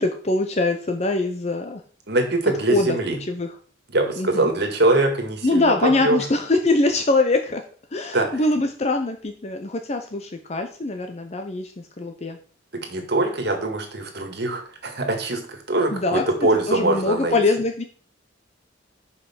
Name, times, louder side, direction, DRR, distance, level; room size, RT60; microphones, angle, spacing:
voice 1, 0.0-1.8 2.7-3.0 3.3-3.5 4.2-4.5 5.4-7.6 7.9-12.4 15.9-16.2 16.7-17.8, left 2 dB, 35° left, 5 dB, 0.6 m, -23 dB
voice 2, 2.1-3.2 3.9-6.2 8.1-8.4 12.7-17.4, right 2 dB, 55° right, 4 dB, 1.8 m, -23 dB
5.6 x 5.5 x 6.0 m, 0.43 s
head